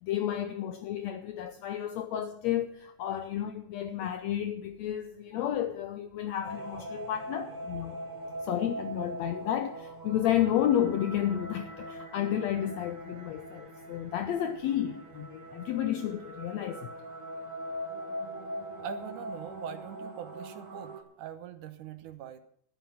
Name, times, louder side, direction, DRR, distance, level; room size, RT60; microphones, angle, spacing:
voice 1, 0.0-8.0 8.4-16.9, left 11 dB, 80° left, 1.6 m, -31 dB
sound 1, 6.4-21.0, right 1 dB, 55° right, 0.9 m, -41 dB
voice 2, 18.8-22.4, right 10 dB, 75° right, 2.4 m, -43 dB
12.0 x 9.2 x 7.1 m
omnidirectional pair, 3.8 m